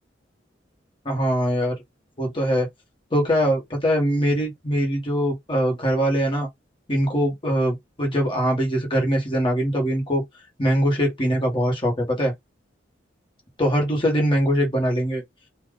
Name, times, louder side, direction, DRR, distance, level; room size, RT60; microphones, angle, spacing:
voice 1, 1.0-1.8 2.2-2.7 3.1-6.5 6.9-10.2 10.6-12.3 13.6-15.2, equal, 30° left, 1.5 m, -22 dB
2.8 x 2.4 x 3.8 m
head